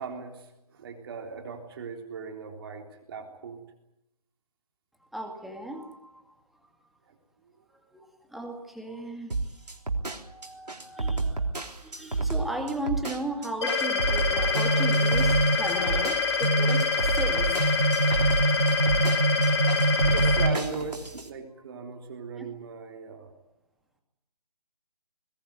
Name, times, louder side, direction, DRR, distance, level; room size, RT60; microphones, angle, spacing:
voice 1, 0.0-3.6 7.1-7.2 11.2-11.4 19.7-23.3, right 5 dB, 35° right, 3 dB, 3.6 m, -39 dB
voice 2, 5.1-6.3 7.9-9.3 10.1-11.4 11.8-17.6 22.4-22.5, right 1 dB, ahead, 2 dB, 2.1 m, -36 dB
sound 1, 9.3-21.3, right 3 dB, 85° right, 3.6 m, -30 dB
sound 2, 13.6-20.5, left 5 dB, 40° left, 4.6 m, -26 dB
sound 3, 14.3-21.2, right 2 dB, 65° right, 5.3 m, -26 dB
21.5 x 20.0 x 9.5 m, 0.86 s
figure-of-eight pair, 150°, 20 cm